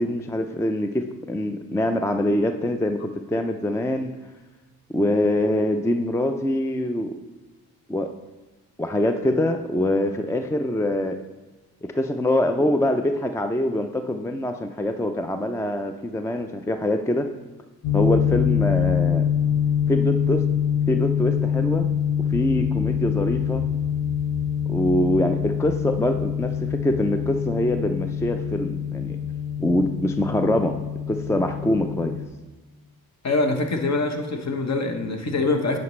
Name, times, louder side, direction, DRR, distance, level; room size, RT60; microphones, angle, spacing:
voice 1, 0.0-4.1 4.9-7.1 7.9-8.1 8.8-11.2 11.9-17.3 17.9-19.2 19.9-20.5 20.9-21.9 22.3-23.6 24.7-29.2 29.6-30.8 31.1-32.1, left 1 dB, 10° left, 7 dB, 0.4 m, -24 dB
sound 1, 17.8-32.3, left 8 dB, 65° left, 0.9 m, -25 dB
voice 2, 33.2-35.8, left 3 dB, 45° left, 5 dB, 1.1 m, -24 dB
9.3 x 5.2 x 3.2 m, 1.2 s
supercardioid pair, 60°, 38 cm